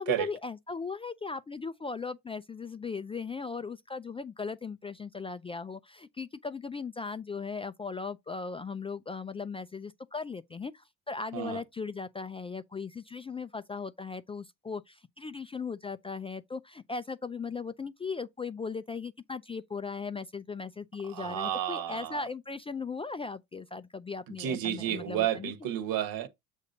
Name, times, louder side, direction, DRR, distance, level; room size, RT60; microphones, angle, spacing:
voice 1, 0.0-25.7, left 4 dB, 15° left, 0.3 m, -38 dB
voice 2, 21.1-22.2 24.4-26.3, right 11 dB, 60° right, 1.2 m, -31 dB
6.8 x 2.7 x 5.2 m
supercardioid pair, 90°, 38 cm